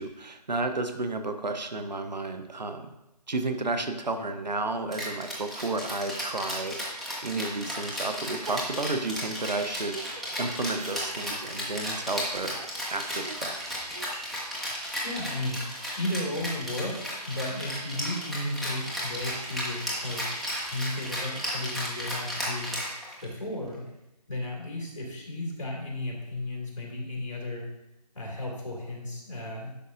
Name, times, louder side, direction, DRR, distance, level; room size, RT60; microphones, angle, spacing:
voice 1, 0.0-2.9 3.3-6.8 7.2-12.6 12.9-13.6, right 2 dB, 85° right, 7 dB, 0.9 m, -32 dB
Rattle (instrument), 4.9-23.4, equal, ahead, 0.4 m, -34 dB
Giggle, 8.5-10.4 10.7-15.0, right 3 dB, 60° right, 0.6 m, -45 dB
voice 2, 15.0-15.6 15.9-20.3 20.6-22.8 23.2-23.9 24.3-27.7 28.1-29.8, left 1 dB, 50° left, -3 dB, 2.3 m, -34 dB
10.0 x 5.3 x 2.5 m, 0.91 s
figure-of-eight pair, 180°, 21 cm